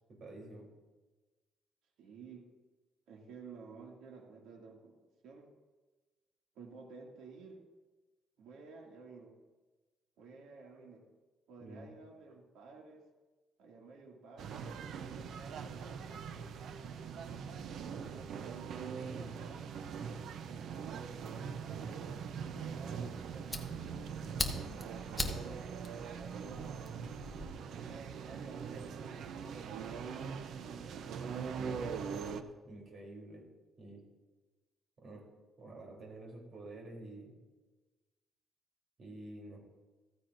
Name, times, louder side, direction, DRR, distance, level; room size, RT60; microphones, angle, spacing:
voice 1, 0.1-0.7 11.6-12.0 31.5-33.4 33.8-34.0 35.0-35.2 35.6-37.3 39.0-39.6, right 2 dB, 45° right, -1 dB, 3.6 m, -49 dB
voice 2, 2.0-2.5 3.1-5.0 5.2-5.5 6.5-7.6 8.4-9.4 10.2-11.1 11.5-13.0 13.6-16.1 16.8-19.6 20.4-21.0 21.7-21.9 22.5-26.7 27.3-30.8, right 4 dB, 85° right, -1 dB, 2.4 m, -54 dB
sound 1, 14.4-32.4, right 6 dB, 65° right, 0.7 m, -42 dB
Fire, 22.9-27.5, left 2 dB, 10° left, 1.2 m, -41 dB
15.0 x 14.5 x 2.7 m, 1.2 s
cardioid pair, 130°, 0 cm